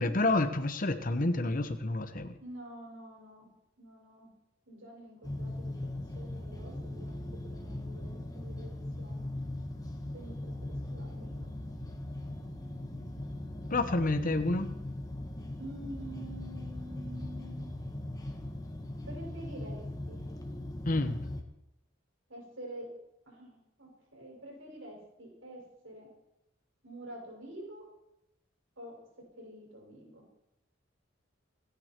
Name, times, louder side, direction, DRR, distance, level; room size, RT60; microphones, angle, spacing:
voice 1, 0.0-2.4 13.7-14.7 20.9-21.2, left 2 dB, 45° left, 8 dB, 1.1 m, -29 dB
voice 2, 2.4-3.5 3.8-4.3 4.7-5.9 6.1-9.3 10.1-11.5 15.6-17.7 19.1-19.8 20.1-20.2 22.3-22.9 23.3-26.1 26.8-27.9 28.8-28.9 29.4-30.2, right 1 dB, 85° right, -1 dB, 6.1 m, -47 dB
sound 1, 5.2-21.4, left 1 dB, 20° left, 1.7 m, -40 dB
28.0 x 9.8 x 4.6 m, 0.84 s
head